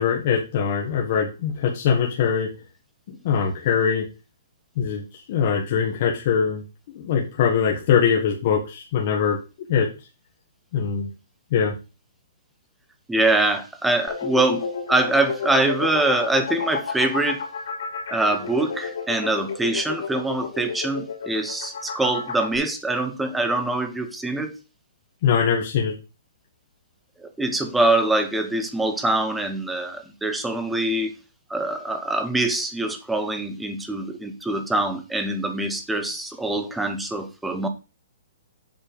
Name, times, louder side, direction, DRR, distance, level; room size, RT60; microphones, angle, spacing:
voice 1, 0.0-2.5 3.1-4.1 4.8-6.6 6.9-9.4 9.7-9.9 10.7-11.1 11.5-11.7 25.2-25.9, left 7 dB, 45° left, -1 dB, 1.4 m, -22 dB
voice 2, 13.1-17.4 18.1-24.5 27.2-31.1 31.5-37.7, right 2 dB, 5° right, 7 dB, 0.9 m, -24 dB
sound 1, 14.1-22.6, left 5 dB, 70° left, 2.9 m, -31 dB
7.5 x 4.3 x 5.2 m, 0.30 s
hypercardioid pair, 160°, 0 cm